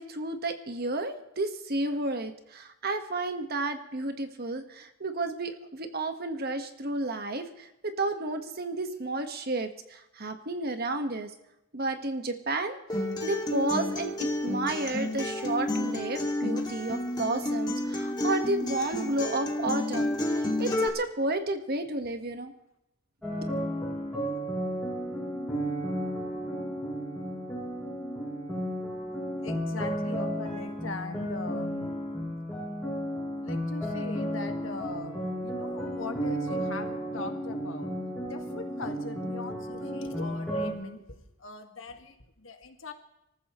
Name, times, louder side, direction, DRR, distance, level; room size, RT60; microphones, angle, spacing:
voice 1, 0.0-11.3 11.7-12.8 13.2-20.1 20.6-22.5 23.4-23.5, right 2 dB, 50° right, 7 dB, 1.5 m, -31 dB
Acoustic guitar, 12.9-20.9, left 1 dB, 20° left, 2.3 m, -30 dB
sound 1, 23.2-40.7, equal, 5° left, 6.6 m, -33 dB
voice 2, 29.4-32.0 33.4-37.9 38.2-42.9, left 3 dB, 80° left, 6 dB, 1.8 m, -41 dB
26.0 x 14.5 x 3.2 m, 0.84 s
head